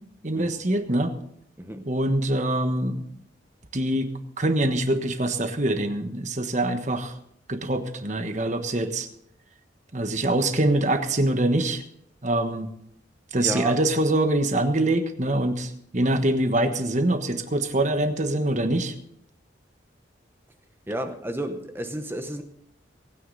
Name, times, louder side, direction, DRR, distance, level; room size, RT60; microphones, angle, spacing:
voice 1, 0.2-1.2 1.9-3.1 3.7-4.1 4.4-7.1 7.5-9.1 9.9-11.8 12.2-12.7 13.3-18.9, right 1 dB, 40° right, 8 dB, 1.3 m, -24 dB
voice 2, 13.4-13.8 20.9-22.4, right 1 dB, 10° right, 7 dB, 0.9 m, -31 dB
23.0 x 9.8 x 4.0 m, 0.70 s
head